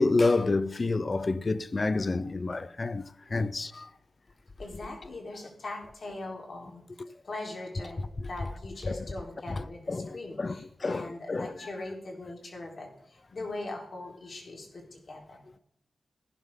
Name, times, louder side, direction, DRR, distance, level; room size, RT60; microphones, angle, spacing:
voice 1, 0.0-3.0 3.3-3.9 7.0-7.1 8.2-8.3 8.9-9.1 9.5-11.5, left 3 dB, 40° left, 0.6 m, -29 dB
voice 2, 4.6-6.8 7.2-8.0 8.3-12.9 13.3-15.4, left 2 dB, 55° left, 3.9 m, -41 dB
16.0 x 11.0 x 3.8 m
wide cardioid pair, 95°, 0 cm